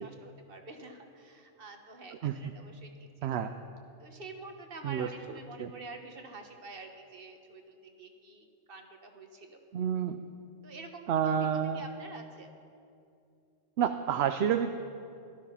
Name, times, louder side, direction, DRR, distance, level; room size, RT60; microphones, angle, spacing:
voice 1, 0.0-3.4 4.0-9.6 10.6-12.5, right 3 dB, 50° right, 5 dB, 1.5 m, -47 dB
voice 2, 9.7-10.2 11.1-11.8 13.8-14.7, right 8 dB, 70° right, 8 dB, 0.8 m, -29 dB
17.0 x 12.5 x 5.7 m, 2.5 s
omnidirectional pair, 1.2 m